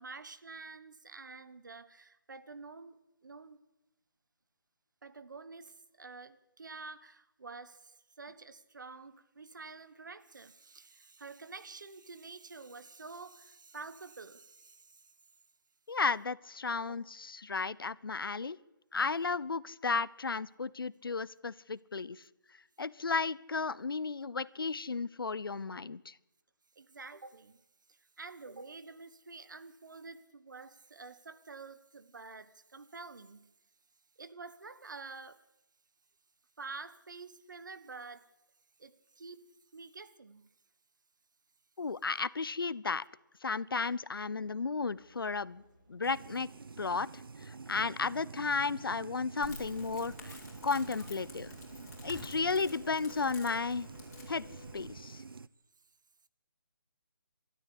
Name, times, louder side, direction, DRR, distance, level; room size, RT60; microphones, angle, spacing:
voice 1, 0.0-3.6 5.0-15.1 16.8-17.0 26.7-27.6 27.9-33.5 34.2-35.4 36.6-38.3 38.8-39.5 39.7-40.5 50.3-50.4 51.0-51.1, right 4 dB, 60° right, 1.3 m, -49 dB
voice 2, 15.9-18.6 18.9-22.2 22.8-26.1 41.8-43.0 43.4-45.6 45.9-46.5 46.8-47.1 47.4-50.3 50.6-51.6 52.0-53.9 54.3-54.4 54.7-55.2, left 4 dB, 80° left, 0.8 m, -34 dB
sound 1, 44.4-53.6, right 1 dB, 30° right, 5.5 m, -66 dB
sound 2, 46.0-55.5, right 4 dB, 85° right, 0.8 m, -48 dB
Crackle, 49.4-54.9, left 3 dB, 45° left, 6.0 m, -50 dB
23.5 x 13.0 x 8.6 m
hypercardioid pair, 175°, 12 cm